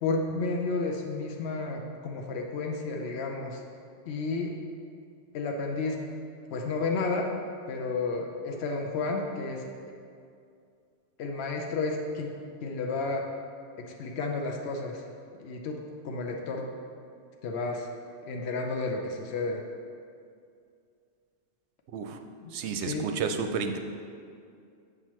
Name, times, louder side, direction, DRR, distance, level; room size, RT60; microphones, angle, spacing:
voice 1, 0.0-3.6 4.1-4.5 5.3-6.0 6.5-7.3 7.7-9.7 11.2-12.3 12.6-13.2 13.8-15.0 15.4-15.8 16.0-16.7 17.4-17.9 18.3-19.6 22.4-22.5 22.8-23.0, left 3 dB, 75° left, 1 dB, 0.9 m, -31 dB
voice 2, 22.5-23.8, right 5 dB, 85° right, 7 dB, 0.9 m, -31 dB
8.0 x 5.9 x 3.0 m, 2.3 s
omnidirectional pair, 1.1 m